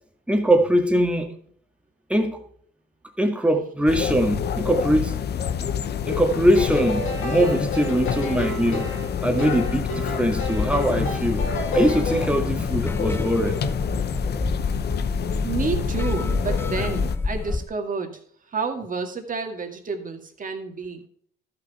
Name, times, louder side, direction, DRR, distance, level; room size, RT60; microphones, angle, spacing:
voice 1, 0.3-1.4 2.1-2.4 3.2-5.2 6.1-8.9 9.2-11.5 11.7-13.6, equal, 5° right, 1.8 m, -22 dB
sound 1, 3.9-17.2, left 8 dB, 55° left, 0.7 m, -28 dB
sound 2, 6.5-12.3, left 1 dB, 85° left, 2.7 m, -31 dB
sound 3, 10.2-17.6, left 3 dB, 10° left, 0.4 m, -29 dB
voice 2, 15.4-18.2 18.5-21.0, right 5 dB, 40° right, 2.1 m, -30 dB
13.0 x 5.9 x 4.2 m
cardioid pair, 90°, 20 cm